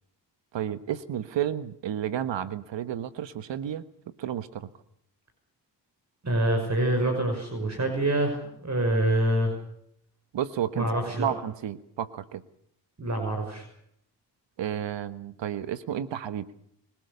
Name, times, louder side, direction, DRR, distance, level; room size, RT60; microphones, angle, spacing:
voice 1, 0.5-3.8 4.2-4.7 10.3-10.9 11.1-12.4 14.6-16.5, right 10 dB, 75° right, 13 dB, 1.4 m, -31 dB
voice 2, 6.2-9.6 10.7-11.3 13.0-13.6, right 1 dB, 40° right, 4 dB, 5.9 m, -26 dB
26.0 x 18.0 x 6.8 m, 0.70 s
cardioid pair, 65°, 44 cm